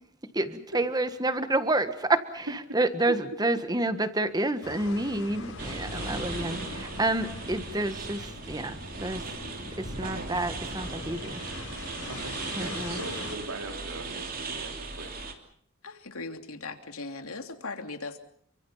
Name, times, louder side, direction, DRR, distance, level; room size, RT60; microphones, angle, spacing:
voice 1, 0.3-2.5 2.7-9.2 10.0-11.4 12.6-13.0, right 2 dB, 20° right, 10 dB, 1.5 m, -29 dB
voice 2, 2.5-2.8 3.1-3.2 3.8-3.9 10.0-10.3 11.0-11.1 12.1-15.2, right 1 dB, 85° right, 4 dB, 4.2 m, -40 dB
sound 1, 4.6-13.4, left 2 dB, 70° left, 5.7 m, -41 dB
sound 2, 5.6-15.3, right 3 dB, 40° right, 3.1 m, -38 dB
voice 3, 15.8-18.2, left 3 dB, 85° left, 6 dB, 2.9 m, -38 dB
29.5 x 24.5 x 5.7 m, 0.62 s
head